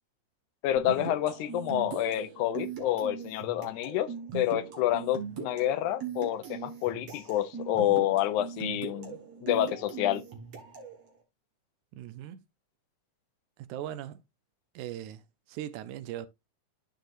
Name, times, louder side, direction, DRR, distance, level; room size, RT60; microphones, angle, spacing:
voice 1, 0.6-10.3, left 13 dB, 85° left, 2.1 m, -28 dB
sound 1, 0.8-11.0, right 6 dB, 55° right, 2.6 m, -40 dB
voice 2, 11.9-12.5 13.6-14.2 14.7-15.2 15.5-16.3, right 12 dB, 85° right, 2.2 m, -39 dB
13.0 x 4.7 x 2.5 m
omnidirectional pair, 3.5 m